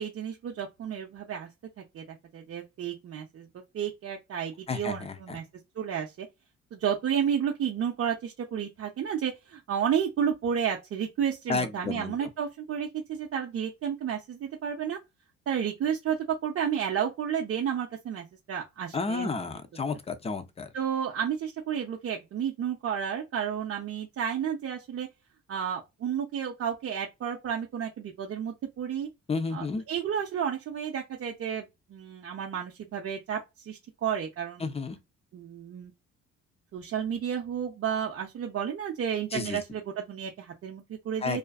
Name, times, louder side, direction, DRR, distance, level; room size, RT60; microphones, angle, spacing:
voice 1, 0.0-1.5 1.9-3.5 3.7-5.4 5.8-6.3 6.7-15.0 15.5-19.5 20.7-25.1 25.5-29.1 29.5-34.7 35.3-35.9 36.7-41.4, right 8 dB, 50° right, 0.6 m, -31 dB
voice 2, 4.7-5.4 11.5-12.2 18.9-20.7 29.3-29.8 34.6-35.0 39.3-39.6 41.2-41.4, left 4 dB, 20° left, 0.5 m, -31 dB
2.4 x 2.3 x 2.3 m
cardioid pair, 90°, 30 cm